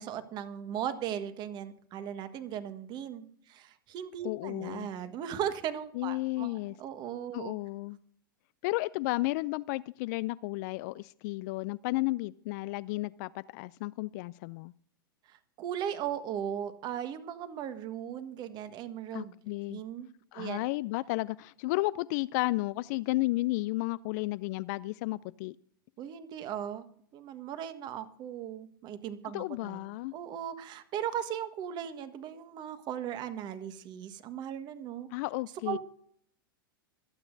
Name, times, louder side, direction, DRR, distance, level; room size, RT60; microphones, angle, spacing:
voice 1, 0.0-7.5 15.3-19.3 19.7-20.1 20.3-20.6 26.0-26.9 27.1-29.8 30.1-35.1 35.7-35.8, right 9 dB, 40° right, 10 dB, 1.5 m, -37 dB
voice 2, 4.2-4.9 5.9-6.7 7.3-8.0 8.6-14.7 19.1-19.8 20.3-25.6 29.3-30.1 35.1-35.8, left 20 dB, 50° left, 18 dB, 0.4 m, -33 dB
25.5 x 8.8 x 2.7 m, 0.64 s
hypercardioid pair, 100°, 12 cm